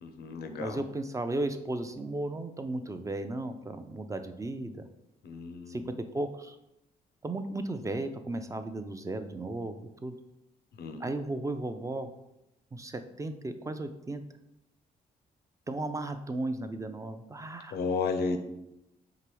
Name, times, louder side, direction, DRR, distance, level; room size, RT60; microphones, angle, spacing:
voice 1, 0.0-0.8 5.2-5.8 10.8-11.0 17.7-18.4, left 4 dB, 75° left, 7 dB, 0.5 m, -33 dB
voice 2, 0.6-4.9 5.7-6.6 7.2-10.2 11.0-12.1 12.7-14.2 15.7-17.8, right 2 dB, 20° right, 8 dB, 0.3 m, -35 dB
4.7 x 3.0 x 3.0 m, 0.86 s
cardioid pair, 80°, 17 cm